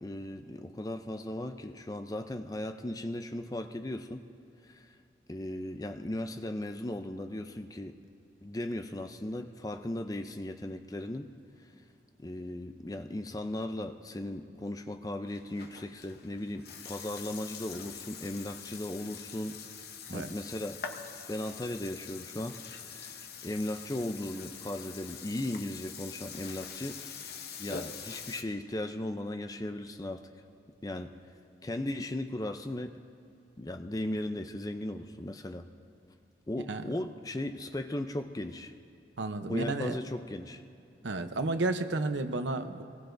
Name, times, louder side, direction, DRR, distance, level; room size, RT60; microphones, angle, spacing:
voice 1, 0.0-4.2 4.6-4.9 5.3-8.0 8.4-11.3 12.2-19.6 20.1-20.8 21.3-27.0 27.6-30.2 30.8-31.1 31.6-33.0 33.6-35.6 36.5-38.7 39.5-40.6, left 1 dB, 20° left, 7 dB, 0.5 m, -37 dB
Burping eructation, 15.3-28.4, left 6 dB, 55° left, 0.9 m, -44 dB
voice 2, 39.2-40.0 41.0-42.8, right 2 dB, 85° right, 8 dB, 0.8 m, -32 dB
24.0 x 19.5 x 2.6 m, 2.5 s
head